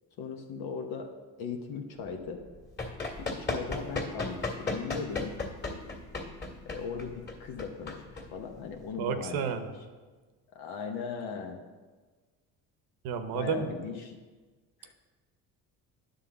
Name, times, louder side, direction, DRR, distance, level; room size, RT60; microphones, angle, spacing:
voice 1, 0.2-1.1 1.4-2.4 3.2-5.3 6.7-9.5 10.5-11.6 13.3-14.2 14.8-14.9, left 5 dB, 70° left, 3 dB, 0.9 m, -38 dB
Run, 2.4-8.9, left 3 dB, 30° left, 1.9 m, -36 dB
voice 2, 9.0-9.7 13.0-13.7, right 7 dB, 75° right, 8 dB, 0.9 m, -31 dB
9.7 x 3.8 x 6.9 m, 1.4 s
cardioid pair, 95°, 38 cm